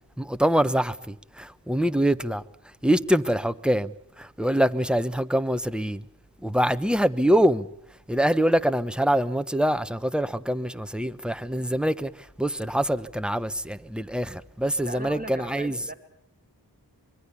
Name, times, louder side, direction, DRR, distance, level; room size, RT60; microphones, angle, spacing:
voice 1, 0.2-2.4 2.8-6.0 6.4-7.7 8.1-15.8, equal, ahead, 1.0 m, -24 dB
voice 2, 14.8-15.9, right 2 dB, 20° right, 3.0 m, -38 dB
25.0 x 22.5 x 7.1 m
wide cardioid pair, 45°, 42 cm